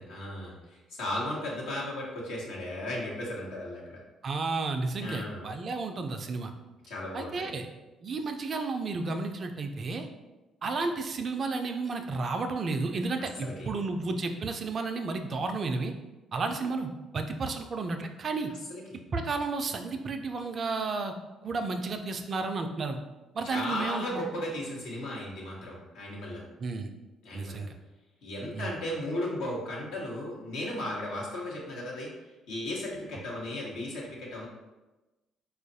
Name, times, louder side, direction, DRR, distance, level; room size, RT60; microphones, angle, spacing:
voice 1, 0.0-4.0 5.0-5.4 6.9-7.5 13.4-13.7 18.7-19.0 23.4-26.4 27.2-27.7 28.2-32.1 32.5-34.5, left 1 dB, 75° left, -4 dB, 1.0 m, -35 dB
voice 2, 4.2-6.5 7.1-7.7 8.0-10.1 10.6-15.9 16.3-18.5 19.1-21.1 21.4-23.0 23.3-24.2 26.6-26.9 27.3-27.7 28.5-28.8, right 3 dB, 50° right, 6 dB, 0.3 m, -32 dB
4.3 x 2.4 x 2.6 m, 1.1 s
hypercardioid pair, 50°, 0 cm